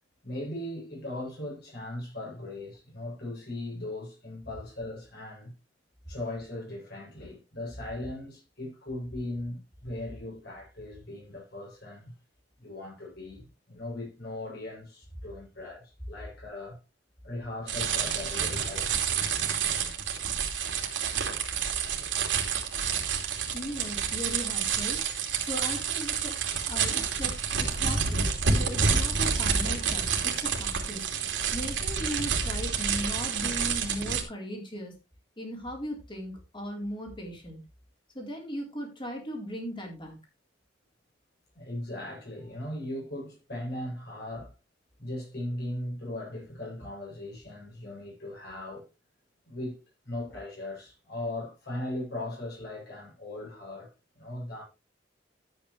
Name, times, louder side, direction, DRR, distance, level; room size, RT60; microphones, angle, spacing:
voice 1, 0.2-5.5 6.1-12.1 12.6-16.8 17.2-18.9 41.5-44.5 45.0-48.9 49.4-49.8 50.0-54.6, left 1 dB, 60° left, 7.8 m, -38 dB
sound 1, 17.7-34.2, right 6 dB, 85° right, 2.7 m, -29 dB
voice 2, 23.5-25.0 25.4-26.4 26.7-31.1 31.5-34.9 35.4-37.6 38.1-40.2, equal, 25° left, 4.1 m, -38 dB
12.5 x 8.8 x 3.3 m
head